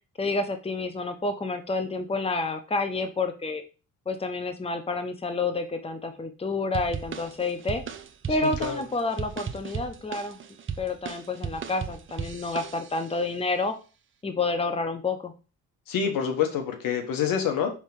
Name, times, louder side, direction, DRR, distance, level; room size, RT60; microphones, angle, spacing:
voice 1, 0.2-3.6 4.1-7.8 8.3-10.4 10.8-13.7 14.2-15.3, left 3 dB, 15° left, 8 dB, 0.9 m, -29 dB
sound 1, 6.7-13.2, right 7 dB, 35° right, 0.8 m, -36 dB
voice 2, 8.4-8.8 15.9-17.7, left 7 dB, 65° left, 5 dB, 1.4 m, -27 dB
5.5 x 3.6 x 4.9 m, 0.33 s
hypercardioid pair, 60°, 36 cm